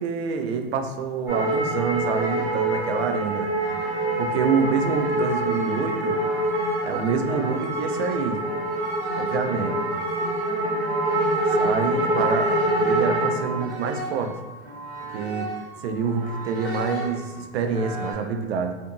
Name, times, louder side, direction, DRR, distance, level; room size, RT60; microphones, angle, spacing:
voice 1, 0.0-3.5 4.2-6.2 6.8-8.4 9.2-9.8 11.5-14.4 15.1-15.5 15.8-18.7, right 5 dB, 75° right, 6 dB, 0.5 m, -27 dB
sound 1, 1.3-15.8 16.2-17.3 17.7-18.1, right 1 dB, 30° right, 1.2 m, -26 dB
2.5 x 2.5 x 2.6 m, 1.3 s
hypercardioid pair, 115°, 32 cm